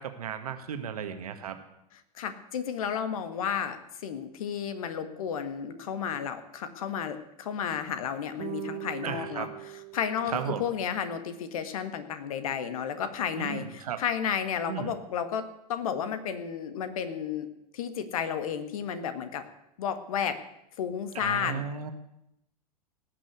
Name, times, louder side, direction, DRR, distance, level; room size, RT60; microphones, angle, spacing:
voice 1, 0.0-1.6 9.0-9.5 10.3-10.6 13.3-14.0 14.7-14.9 21.2-21.9, right 8 dB, 65° right, 8 dB, 1.7 m, -35 dB
voice 2, 2.1-15.4 15.7-17.5 17.7-19.4 19.8-20.4 20.8-21.6, left 8 dB, 60° left, 11 dB, 1.6 m, -32 dB
sound 1, 8.4-10.9, right 20 dB, 40° right, 1.0 m, -41 dB
18.0 x 6.1 x 9.5 m, 0.83 s
figure-of-eight pair, 95°, 20 cm